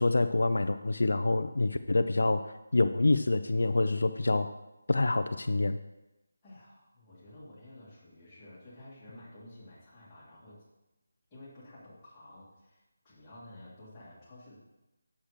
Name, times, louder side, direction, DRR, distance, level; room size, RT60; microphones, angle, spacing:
voice 1, 0.0-2.5 2.7-4.5 4.9-5.8, left 2 dB, 75° left, 9 dB, 0.5 m, -26 dB
voice 2, 6.4-10.6 11.3-14.6, left 1 dB, 10° left, -11 dB, 2.1 m, -52 dB
7.4 x 7.1 x 5.0 m, 0.99 s
figure-of-eight pair, 180°, 0 cm